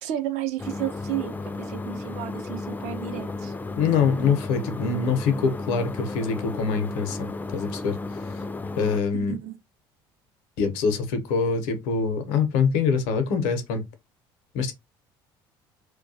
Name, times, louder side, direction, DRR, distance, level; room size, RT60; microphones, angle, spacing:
voice 1, 0.0-3.5 9.1-9.5, right 12 dB, 70° right, 0.6 m, -32 dB
sound 1, 0.6-9.0, left 3 dB, 15° left, 0.4 m, -34 dB
voice 2, 3.8-8.0 8.3-8.4 8.8-9.4 10.6-13.8 14.5-14.7, left 5 dB, 75° left, 0.7 m, -24 dB
2.3 x 2.2 x 2.6 m
hypercardioid pair, 70°, 12 cm